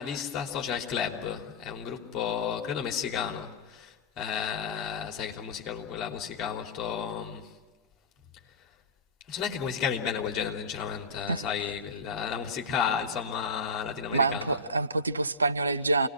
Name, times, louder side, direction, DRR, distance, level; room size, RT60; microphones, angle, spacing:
voice 1, 0.0-7.5 8.6-8.7 9.3-14.5, left 7 dB, 30° left, 3.3 m, -32 dB
voice 2, 11.3-11.7 14.1-16.1, right 3 dB, 75° right, 0.9 m, -27 dB
28.5 x 20.0 x 6.2 m
figure-of-eight pair, 90°, 0 cm